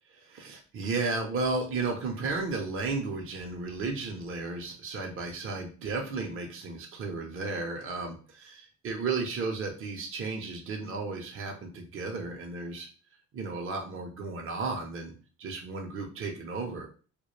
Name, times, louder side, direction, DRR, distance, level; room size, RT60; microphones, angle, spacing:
voice 1, 0.3-12.9 13.3-16.9, right 3 dB, 45° right, 2 dB, 0.6 m, -34 dB
2.2 x 2.1 x 3.0 m, 0.38 s
cardioid pair, 90°, 30 cm